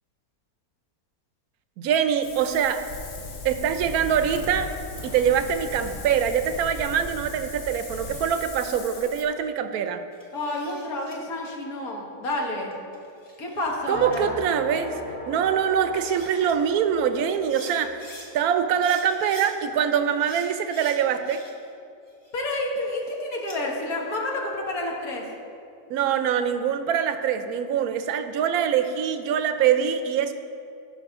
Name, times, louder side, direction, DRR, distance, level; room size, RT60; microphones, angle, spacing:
voice 1, 1.8-2.9 3.4-4.7 5.0-10.0 13.9-15.0 15.3-18.0 18.3-21.4 25.9-30.3, right 8 dB, 80° right, 9 dB, 1.1 m, -24 dB
Wind, 2.2-9.2, left 2 dB, 55° left, 1.2 m, -37 dB
sound 1, 10.1-11.2 12.7-13.8 14.1-14.2 15.6-15.7 15.9-16.5 17.3-18.3 18.8-19.5 20.2-21.7 22.1-23.6, left 1 dB, 15° left, 1.1 m, -46 dB
voice 2, 10.3-12.7 13.4-14.4 22.3-25.2, left 1 dB, 70° left, -1 dB, 1.8 m, -29 dB
sound 2, 13.9-19.3, left 2 dB, 40° left, 2.3 m, -40 dB
14.5 x 5.9 x 3.6 m, 2.5 s
omnidirectional pair, 1.6 m